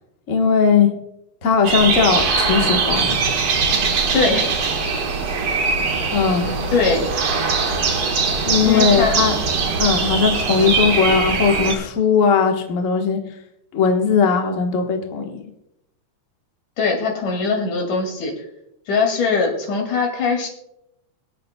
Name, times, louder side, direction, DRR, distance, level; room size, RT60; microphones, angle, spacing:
voice 1, 0.3-0.9 1.4-3.1 6.1-6.5 8.5-9.3 9.8-13.2 13.7-15.4, left 6 dB, 60° left, 3 dB, 0.8 m, -18 dB
sound 1, 1.6-11.8, right 4 dB, 55° right, 2.1 m, -21 dB
voice 2, 4.1-4.6 6.7-7.1 8.6-9.2 10.6-10.8 16.8-18.3 18.9-20.5, left 4 dB, 85° left, 2 dB, 3.8 m, -21 dB
24.0 x 8.4 x 2.2 m, 0.82 s
omnidirectional pair, 3.5 m